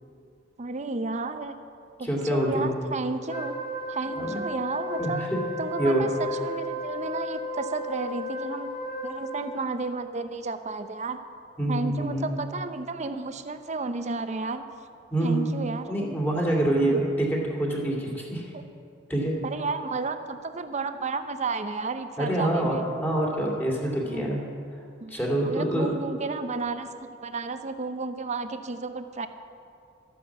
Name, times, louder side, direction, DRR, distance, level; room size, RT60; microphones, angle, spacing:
voice 1, 0.6-1.5 2.0-3.6 3.9-5.2 5.6-8.7 9.0-11.2 11.7-14.7 15.2-16.0 16.8-17.0 18.5-18.6 19.4-22.8 24.1-24.3 25.0-25.2 25.4-29.3, right 3 dB, 40° right, 9 dB, 0.7 m, -32 dB
voice 2, 2.0-2.7 4.2-4.4 5.0-5.4 5.8-6.1 11.6-12.3 15.1-15.5 15.9-18.4 19.1-19.3 22.2-24.4 25.1-25.9, right 1 dB, 10° left, -2 dB, 2.4 m, -26 dB
Wind instrument woodwind instrument, 3.3-9.6, left 1 dB, 35° left, 3.2 m, -34 dB
13.0 x 9.4 x 7.3 m, 2.4 s
head